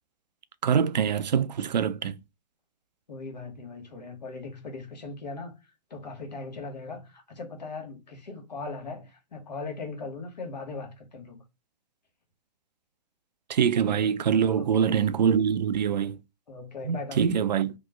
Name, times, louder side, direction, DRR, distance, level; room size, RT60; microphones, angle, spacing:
voice 1, 0.6-2.2 13.5-16.2 16.8-17.7, right 7 dB, 85° right, 0.4 m, -24 dB
voice 2, 3.1-5.5 5.9-11.4 13.8-14.1 14.6-15.0 16.5-17.3, left 3 dB, 85° left, 1.2 m, -39 dB
3.0 x 2.1 x 3.4 m
hypercardioid pair, 135°, 21 cm